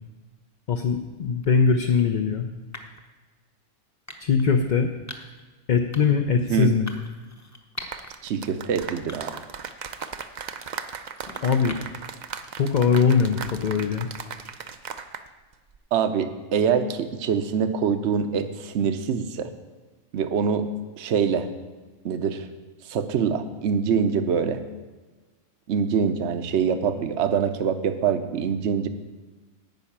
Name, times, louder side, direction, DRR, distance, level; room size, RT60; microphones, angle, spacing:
voice 1, 0.7-2.5 4.2-4.9 5.7-6.9 11.4-11.8 12.6-14.1, left 5 dB, 45° left, 5 dB, 0.7 m, -21 dB
sound 1, 1.4-1.7 2.7-3.1 4.1-4.5 5.1-5.4 5.9-6.3 6.9-8.1 8.6-8.7 9.1-9.6 9.9-12.1, left 1 dB, 15° left, 0.9 m, -42 dB
sound 2, 7.8-15.3 15.5-15.8, right 6 dB, 50° right, 0.5 m, -37 dB
voice 2, 8.2-9.4 15.9-19.5 20.1-20.7 21.0-21.5 22.0-22.5 22.9-24.6 25.7-28.9, right 7 dB, 65° right, 10 dB, 1.0 m, -24 dB
10.5 x 5.6 x 8.6 m, 1.3 s
omnidirectional pair, 1.3 m